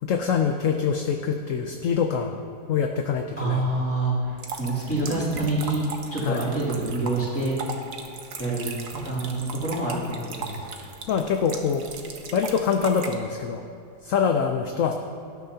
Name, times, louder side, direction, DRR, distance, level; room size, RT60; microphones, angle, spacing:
voice 1, 0.0-2.4 2.7-3.6 6.2-6.4 11.1-11.8 12.3-13.6 14.0-14.9, left 6 dB, 65° left, 4 dB, 0.8 m, -24 dB
voice 2, 3.4-5.8 6.1-7.6 8.4-10.6, right 2 dB, 10° left, -9 dB, 3.1 m, -27 dB
sound 1, 4.4-13.1, right 5 dB, 55° right, 1.3 m, -38 dB
18.0 x 10.0 x 2.8 m, 2.5 s
omnidirectional pair, 1.8 m